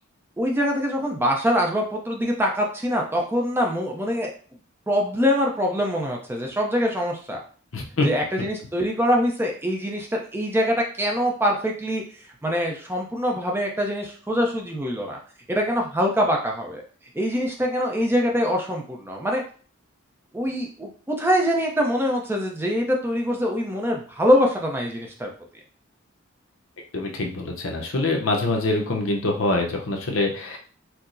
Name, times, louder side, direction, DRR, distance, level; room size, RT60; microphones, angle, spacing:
voice 1, 0.4-4.3 4.9-7.4 8.0-12.0 12.4-15.2 15.5-16.8 17.1-19.4 20.3-25.3, equal, 10° right, 1 dB, 0.5 m, -24 dB
voice 2, 7.7-8.1 26.9-30.6, left 2 dB, 70° left, 1 dB, 0.7 m, -24 dB
4.5 x 2.0 x 2.6 m, 0.41 s
head